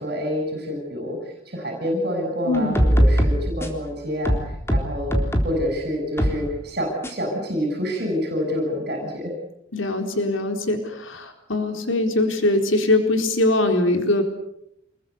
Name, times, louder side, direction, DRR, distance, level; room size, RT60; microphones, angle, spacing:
voice 1, 0.0-5.1 5.4-9.3, equal, 50° right, 3 dB, 7.5 m, -27 dB
voice 2, 2.5-2.8 9.7-14.2, left 2 dB, 75° left, 5 dB, 4.2 m, -22 dB
sound 1, 2.5-3.9 4.2-5.6 6.2-6.4 7.0-7.1, equal, 15° left, 3.8 m, -20 dB
28.0 x 22.0 x 8.3 m, 0.78 s
head